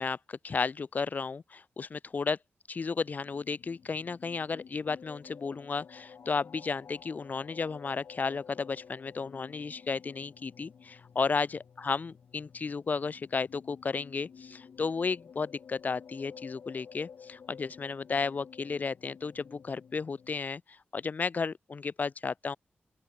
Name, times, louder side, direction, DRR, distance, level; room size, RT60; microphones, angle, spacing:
voice 1, 0.0-2.4 2.7-22.6, left 4 dB, 45° left, 1.8 m, -33 dB
sound 1, 3.1-20.4, left 6 dB, 75° left, 7.1 m, -53 dB
open air
wide cardioid pair, 160°, 4 cm